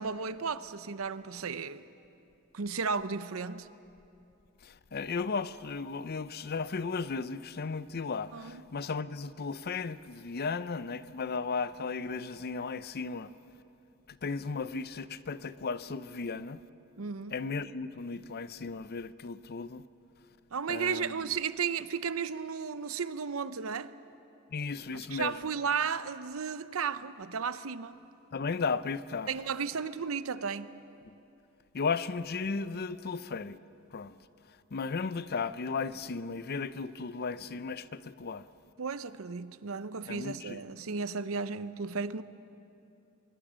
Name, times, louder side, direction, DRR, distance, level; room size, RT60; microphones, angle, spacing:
voice 1, 0.0-1.9 2.5-3.7 8.3-8.6 17.0-17.4 20.5-23.9 24.9-28.0 29.3-30.7 38.8-42.2, right 5 dB, 75° right, 0.7 m, -34 dB
voice 2, 4.6-13.3 14.1-16.6 17.3-19.8 20.7-21.1 24.5-25.3 28.3-29.3 31.1-31.2 31.7-33.6 33.9-34.2 34.7-38.5 40.1-40.6, left 4 dB, 50° left, 0.6 m, -35 dB
25.0 x 22.0 x 6.3 m
head